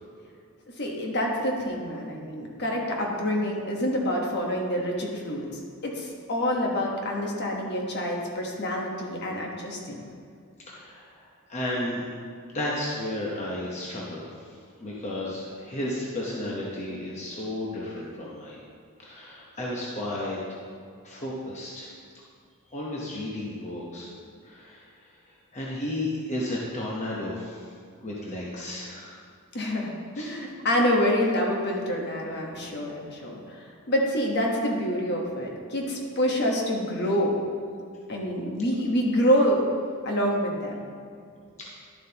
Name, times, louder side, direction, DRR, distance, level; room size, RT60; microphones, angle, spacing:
voice 1, 0.8-5.5 5.8-10.0 29.5-37.4 38.1-39.6 40.0-40.8, equal, 50° left, 0 dB, 1.2 m, -27 dB
voice 2, 10.7-12.0 12.5-14.3 14.8-18.6 19.0-20.4 21.0-21.9 22.7-24.1 24.4-24.8 25.5-27.6 28.0-29.2 30.2-30.3, left 1 dB, 30° left, -4 dB, 1.0 m, -33 dB
11.5 x 7.4 x 2.9 m, 2.2 s
head